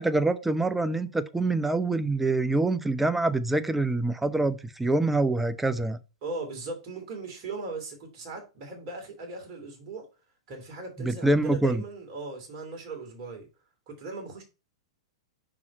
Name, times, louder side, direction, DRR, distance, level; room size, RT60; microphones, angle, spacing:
voice 1, 0.0-6.0 11.0-11.8, right 2 dB, 5° right, 0.6 m, -25 dB
voice 2, 6.2-10.0 10.5-13.5 13.9-14.4, right 3 dB, 40° right, 2.8 m, -38 dB
5.5 x 4.8 x 4.5 m
figure-of-eight pair, 100°, 3 cm